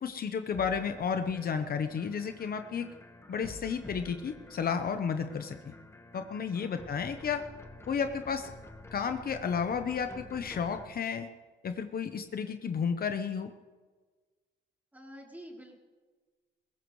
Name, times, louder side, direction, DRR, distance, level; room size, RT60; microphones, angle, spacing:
voice 1, 0.0-2.9 3.3-5.6 6.1-7.4 7.9-8.5 8.9-11.3 11.6-13.5, left 6 dB, 50° left, 8 dB, 1.0 m, -32 dB
The killer is coming for you, 0.5-10.9, left 2 dB, 15° left, 1.5 m, -49 dB
voice 2, 14.9-15.8, equal, 10° right, -1 dB, 3.4 m, -48 dB
21.0 x 17.5 x 3.2 m, 1.4 s
cardioid pair, 90°, 20 cm